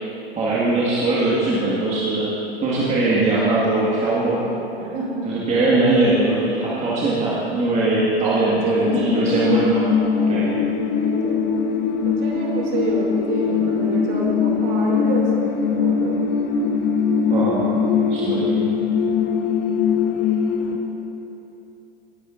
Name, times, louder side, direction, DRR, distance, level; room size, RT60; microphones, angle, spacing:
voice 1, 0.4-2.3 2.6-4.4 5.2-9.9 10.3-10.5 17.2-17.9 18.1-18.7, right 2 dB, 20° right, -7 dB, 1.8 m, -21 dB
voice 2, 4.7-5.3 8.2-9.4 10.2-10.6 10.9-11.4 12.0-16.2 16.6-16.8, right 2 dB, 40° right, -2 dB, 2.6 m, -28 dB
sound 1, 8.9-20.8, left 6 dB, 35° left, 1.1 m, -21 dB
18.5 x 11.0 x 2.6 m, 2.9 s
figure-of-eight pair, 100°, 31 cm